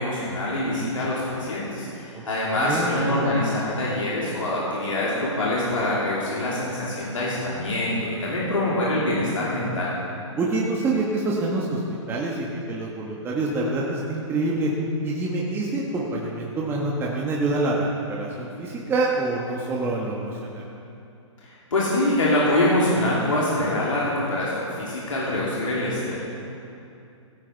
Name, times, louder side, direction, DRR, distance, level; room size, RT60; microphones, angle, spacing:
voice 1, 0.0-9.9 21.4-26.2, left 1 dB, 85° left, -7 dB, 3.0 m, -24 dB
voice 2, 2.1-2.9 10.4-11.8 12.1-14.7 15.0-20.6, right 2 dB, 15° right, -3 dB, 1.3 m, -26 dB
16.0 x 9.0 x 4.5 m, 2.6 s
hypercardioid pair, 135°, 16 cm